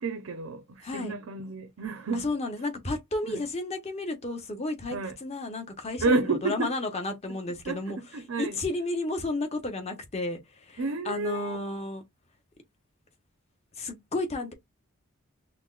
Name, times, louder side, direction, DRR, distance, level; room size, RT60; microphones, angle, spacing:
voice 1, 0.0-2.3 3.3-3.4 4.9-5.2 6.0-6.7 7.7-8.6 10.8-11.6, right 3 dB, 85° right, 0.6 m, -30 dB
voice 2, 0.8-1.1 2.1-8.0 8.4-12.0 13.8-14.5, left 2 dB, 30° left, 0.9 m, -32 dB
5.8 x 2.1 x 2.4 m
head